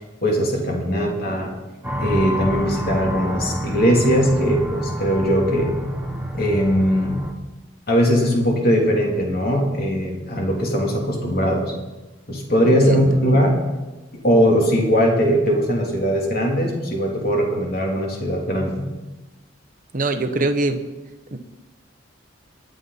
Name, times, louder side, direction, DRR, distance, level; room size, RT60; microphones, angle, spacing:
voice 1, 0.2-1.5 2.0-5.7 6.3-7.2 7.9-11.6 12.3-13.6 14.2-18.8, equal, 50° left, -1 dB, 3.2 m, -20 dB
voice 2, 1.0-1.3 12.8-13.2 19.9-20.8 21.3-21.4, right 2 dB, 45° right, 7 dB, 1.1 m, -23 dB
sound 1, 1.8-7.3, equal, 10° right, 1.3 m, -28 dB
23.5 x 9.3 x 4.2 m, 1.1 s
head